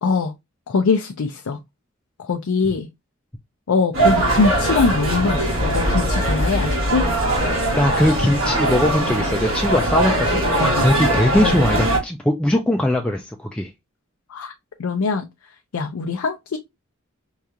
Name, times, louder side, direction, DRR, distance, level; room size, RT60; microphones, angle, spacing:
voice 1, 0.0-0.3 0.7-1.6 2.2-2.9 3.7-7.0 11.3-11.6 14.3-14.5 14.8-15.3 15.7-16.6, left 4 dB, 90° left, 0.5 m, -22 dB
sound 1, 3.9-12.0, right 1 dB, 75° right, 1.7 m, -20 dB
voice 2, 7.7-13.7, left 1 dB, 5° left, 0.3 m, -20 dB
4.7 x 2.4 x 2.7 m
head